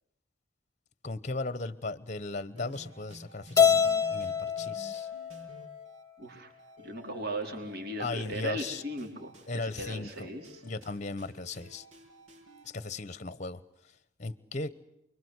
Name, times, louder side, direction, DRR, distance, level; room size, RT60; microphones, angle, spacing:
voice 1, 1.0-5.1 8.0-8.8 9.5-10.3 10.6-11.8 12.7-13.6 14.2-14.7, left 3 dB, 35° left, 16 dB, 1.0 m, -37 dB
sound 1, 2.5-12.7, equal, 75° right, 7.9 m, -53 dB
Keyboard (musical), 3.6-5.9, left 7 dB, 15° left, 1.2 m, -26 dB
voice 2, 6.2-6.5 6.8-9.4 9.6-10.6, right 1 dB, 50° right, 3 dB, 4.4 m, -38 dB
29.5 x 23.0 x 8.1 m, 0.81 s
head